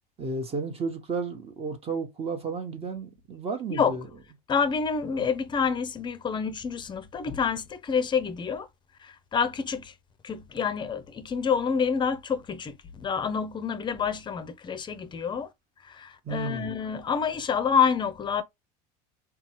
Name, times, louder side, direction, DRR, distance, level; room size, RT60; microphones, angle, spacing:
voice 1, 0.2-4.1 5.2-5.3 16.2-16.7, right 4 dB, 30° right, 0.9 m, -33 dB
voice 2, 4.5-8.7 9.0-9.9 10.2-15.5 15.8-18.4, left 6 dB, 25° left, 0.5 m, -28 dB
3.8 x 2.4 x 3.0 m
supercardioid pair, 105°, 20 cm